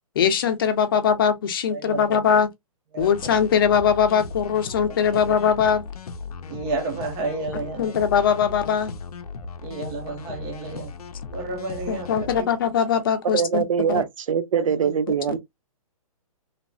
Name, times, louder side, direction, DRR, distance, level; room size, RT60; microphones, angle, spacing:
voice 1, 0.2-2.5 3.0-5.8 7.8-8.9 11.9-13.6 13.9-14.0, left 7 dB, 40° left, 0.6 m, -21 dB
voice 2, 1.7-2.2 2.9-3.3 5.1-5.3 6.5-7.9 9.6-10.9 11.3-12.1 12.3-12.5 14.5-15.2, right 3 dB, 10° right, 0.4 m, -31 dB
sound 1, 3.0-12.4, left 4 dB, 85° left, 0.6 m, -37 dB
voice 3, 13.3-15.4, right 7 dB, 60° right, 0.5 m, -23 dB
3.2 x 2.0 x 2.4 m
hypercardioid pair, 170°, 19 cm